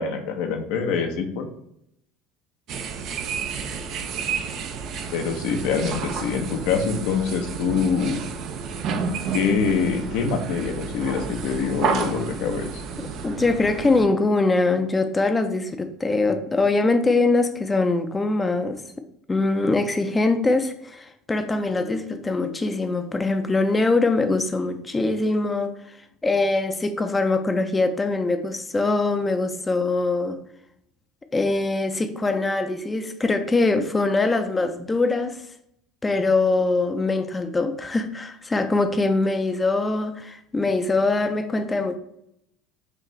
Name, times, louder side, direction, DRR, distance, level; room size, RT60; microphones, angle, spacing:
voice 1, 0.0-1.5 5.1-8.2 9.3-12.8, left 5 dB, 70° left, 0.7 m, -25 dB
sound 1, 2.7-14.0, right 5 dB, 55° right, 0.5 m, -31 dB
voice 2, 13.0-18.8 19.3-26.0 26.2-30.4 31.3-35.4 36.0-42.0, left 3 dB, 20° left, 0.5 m, -23 dB
4.7 x 2.6 x 3.1 m
hypercardioid pair, 85°, 0 cm